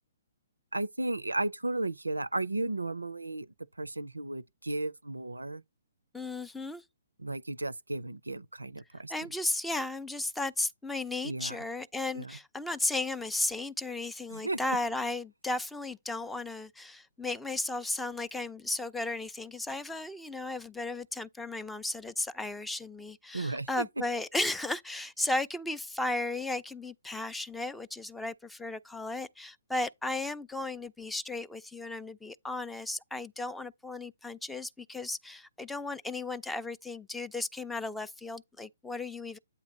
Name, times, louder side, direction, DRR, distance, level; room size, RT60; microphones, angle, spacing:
voice 1, 0.7-3.5 3.8-5.6 7.2-9.1 11.2-11.6 12.1-12.3 14.3-14.6 23.3-23.9, right 2 dB, 85° right, 0.4 m, -34 dB
voice 2, 6.1-6.8 9.1-39.4, left 2 dB, 5° left, 0.3 m, -35 dB
8.3 x 2.8 x 4.7 m
figure-of-eight pair, 125°, 0 cm